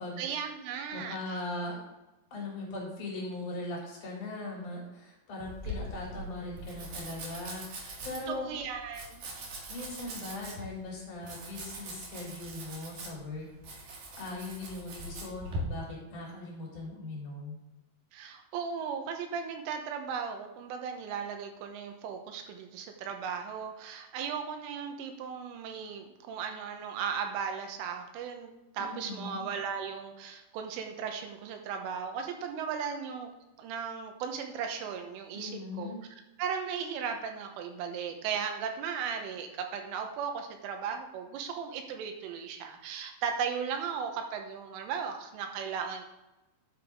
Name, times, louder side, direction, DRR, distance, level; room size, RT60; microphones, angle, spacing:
voice 1, 0.2-1.4 8.3-9.3 18.1-33.3 33.6-35.9 36.4-46.1, right 7 dB, 80° right, 4 dB, 3.4 m, -36 dB
voice 2, 0.9-1.8 2.3-8.5 9.7-13.9 14.2-17.6 28.8-29.5 35.3-36.0, left 2 dB, 40° left, -3 dB, 4.6 m, -40 dB
Domestic sounds home sounds, 5.4-15.6, right 1 dB, 65° right, 1.9 m, -42 dB
9.6 x 8.0 x 3.7 m, 1.0 s
omnidirectional pair, 5.9 m